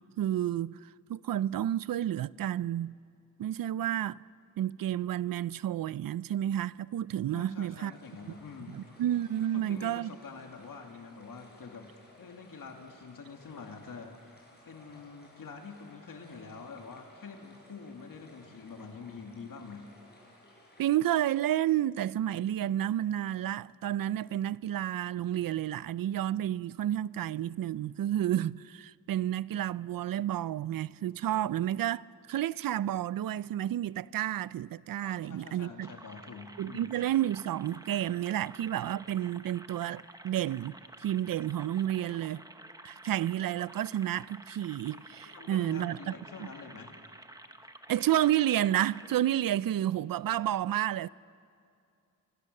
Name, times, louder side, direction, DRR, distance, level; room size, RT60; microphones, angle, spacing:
voice 1, 0.2-3.0 3.4-4.2 4.6-7.9 8.7-10.1 20.8-35.9 36.6-42.4 42.8-46.1 47.9-51.1, right 12 dB, 75° right, 0.5 m, -30 dB
voice 2, 7.3-8.8 9.4-11.9 12.2-14.4 14.7-19.9 35.0-36.9 45.3-46.9, left 5 dB, 70° left, 2.3 m, -46 dB
sound 1, 7.9-20.9, left 1 dB, 30° left, 6.5 m, -58 dB
sound 2, 35.8-49.2, right 1 dB, 10° right, 0.9 m, -51 dB
27.5 x 23.5 x 6.6 m
wide cardioid pair, 150°, 34 cm